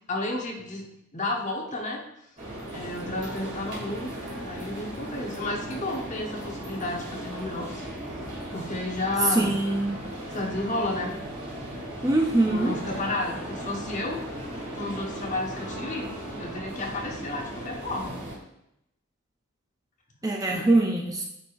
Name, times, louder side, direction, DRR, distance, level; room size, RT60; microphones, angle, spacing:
voice 1, 0.1-0.8 1.1-2.0 2.7-4.1 4.4-7.9 8.5-9.5 10.3-11.1 12.4-14.3 14.7-16.1 16.4-18.2 20.6-20.7, left 2 dB, 35° left, 0 dB, 1.1 m, -32 dB
sound 1, 2.4-18.4, right 1 dB, 40° right, 2.6 m, -37 dB
voice 2, 9.3-10.0 12.0-12.7 20.2-21.2, right 2 dB, 15° right, 1 dB, 0.5 m, -23 dB
8.9 x 4.7 x 2.6 m, 0.80 s
head